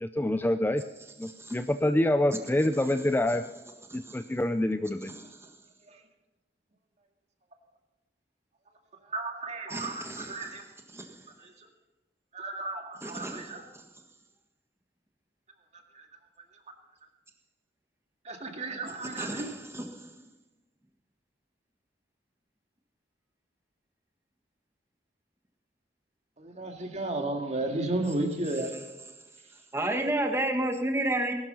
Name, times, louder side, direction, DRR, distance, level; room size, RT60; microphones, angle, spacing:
voice 1, 0.0-0.8 1.2-3.4 3.9-5.1, left 1 dB, 10° left, 9 dB, 0.4 m, -26 dB
voice 2, 9.0-10.7 11.4-11.7 12.3-13.6 15.7-16.1 18.2-19.5 26.4-28.7, right 2 dB, 40° right, 4 dB, 2.1 m, -34 dB
voice 3, 9.7-10.3 10.9-11.1 13.0-13.5 19.2-20.1 29.7-31.3, right 1 dB, 15° right, 4 dB, 1.5 m, -31 dB
19.5 x 12.0 x 5.5 m, 1.1 s
head